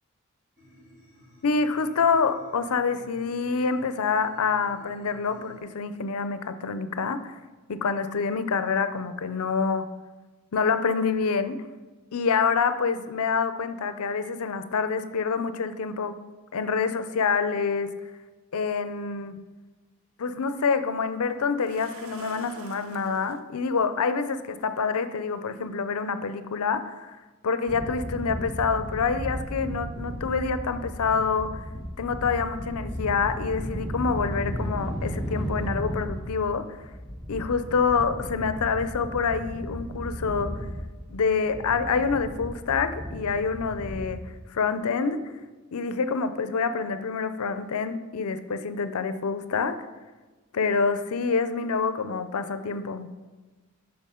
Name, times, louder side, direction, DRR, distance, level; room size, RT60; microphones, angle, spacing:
sound 1, 0.6-5.6, left 1 dB, 35° right, 1.9 m, -53 dB
voice 1, 1.4-7.3 7.7-9.9 10.5-11.6 12.1-16.2 16.5-17.9 18.5-19.4 20.2-27.2 27.4-31.6 32.0-36.6 37.3-40.6 41.1-44.2 44.5-45.2 45.7-49.8 50.5-53.1, left 5 dB, 85° left, 11 dB, 0.5 m, -27 dB
sound 2, 20.5-20.6 21.6-23.4 24.6-24.7 25.2-25.4, right 5 dB, 75° right, 0.6 m, -46 dB
sound 3, 27.7-44.1, equal, 5° right, 1.1 m, -35 dB
8.3 x 5.9 x 3.7 m, 1.3 s
head